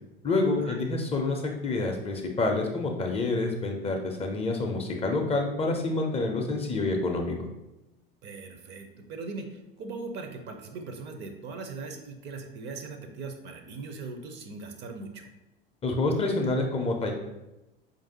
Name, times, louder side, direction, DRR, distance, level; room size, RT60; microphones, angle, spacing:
voice 1, 0.2-7.3 15.8-17.1, left 2 dB, 20° left, 2 dB, 0.5 m, -27 dB
voice 2, 8.2-15.3, right 3 dB, 40° right, 5 dB, 0.5 m, -40 dB
4.6 x 2.6 x 2.8 m, 0.97 s
figure-of-eight pair, 75°, 29 cm